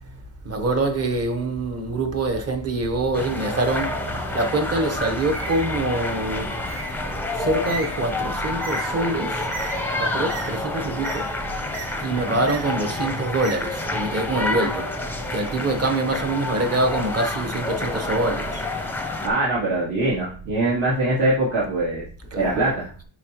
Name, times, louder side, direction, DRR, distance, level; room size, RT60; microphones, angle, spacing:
voice 1, 0.4-6.6 7.4-9.5 10.0-11.3 12.0-14.9 15.3-18.6 22.3-22.5, right 2 dB, 30° right, 1.0 m, -25 dB
sound 1, 3.1-19.3, left 2 dB, 5° left, 0.6 m, -29 dB
Bird, 5.3-14.2, right 4 dB, 50° right, 1.3 m, -38 dB
voice 2, 19.2-22.0 22.4-22.9, right 2 dB, 70° right, 2.8 m, -23 dB
8.3 x 5.7 x 3.0 m
wide cardioid pair, 175°, 47 cm